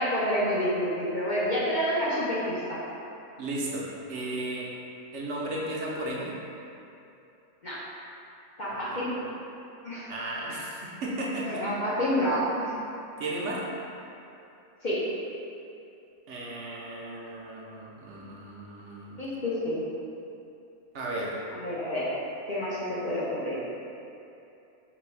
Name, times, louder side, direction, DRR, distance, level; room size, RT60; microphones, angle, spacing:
voice 1, 0.0-2.8 7.6-7.8 8.6-9.3 9.8-10.1 11.5-12.8 14.8-15.0 19.2-19.8 21.5-22.1 22.5-23.6, equal, 50° left, -9 dB, 0.6 m, -28 dB
voice 2, 3.4-4.7 5.1-6.3 8.9-9.0 10.1-11.6 13.2-13.7 16.3-19.2 20.9-21.4, right 1 dB, 65° right, -4 dB, 0.9 m, -34 dB
4.1 x 2.3 x 4.4 m, 2.7 s
omnidirectional pair, 1.4 m